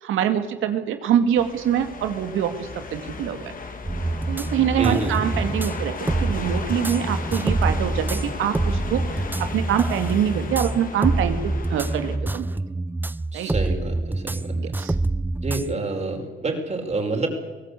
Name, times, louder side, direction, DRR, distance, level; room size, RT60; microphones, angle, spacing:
voice 1, 0.0-3.5 4.3-9.0 9.4-12.5 13.3-13.5 14.5-14.9, right 9 dB, 85° right, 8 dB, 2.4 m, -24 dB
sound 1, 1.4-12.2, left 4 dB, 45° left, 3.1 m, -35 dB
sound 2, 3.8-15.8, right 2 dB, 10° right, 0.6 m, -26 dB
voice 2, 4.8-5.1 13.3-14.8 15.4-17.3, right 3 dB, 35° right, 2 dB, 5.6 m, -28 dB
23.5 x 17.5 x 8.5 m, 1.3 s
cardioid pair, 90°, 20 cm